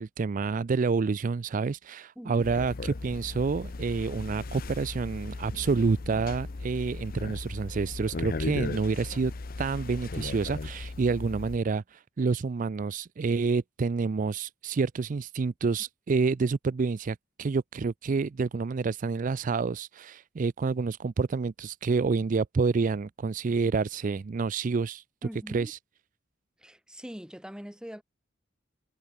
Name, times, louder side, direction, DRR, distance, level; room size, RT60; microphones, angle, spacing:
voice 1, 0.0-9.3 9.6-25.0 25.5-25.8, right 4 dB, 45° right, 0.4 m, -28 dB
voice 2, 2.2-2.5 25.2-25.7 26.6-28.0, equal, 5° right, 2.5 m, -42 dB
sound 1, 2.4-11.6, left 3 dB, 50° left, 0.7 m, -37 dB
head